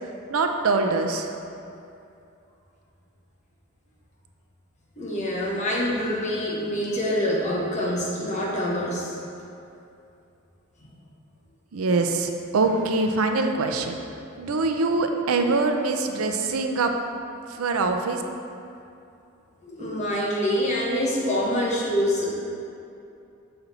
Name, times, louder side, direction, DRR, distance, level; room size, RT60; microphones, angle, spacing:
voice 1, 0.3-1.3 11.7-14.0 14.4-16.9 17.5-18.2, right 3 dB, 85° right, 5 dB, 0.5 m, -24 dB
voice 2, 5.0-9.2 19.6-22.3, equal, 35° left, -5 dB, 1.2 m, -25 dB
6.7 x 4.3 x 4.1 m, 2.6 s
head